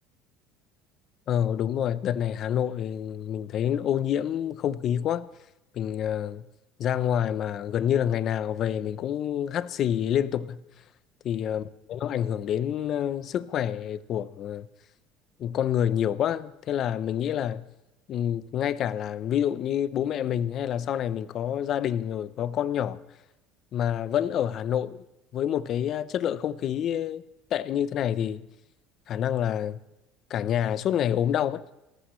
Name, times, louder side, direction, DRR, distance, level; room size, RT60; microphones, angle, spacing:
voice 1, 1.3-5.3 5.7-6.4 6.8-10.6 11.2-14.7 15.4-17.7 18.1-23.0 23.7-25.0 25.3-27.2 27.5-28.4 29.1-29.8 30.3-31.6, left 10 dB, 45° left, 0.7 m, -27 dB
29.5 x 14.5 x 3.2 m
cardioid pair, 125°, 0 cm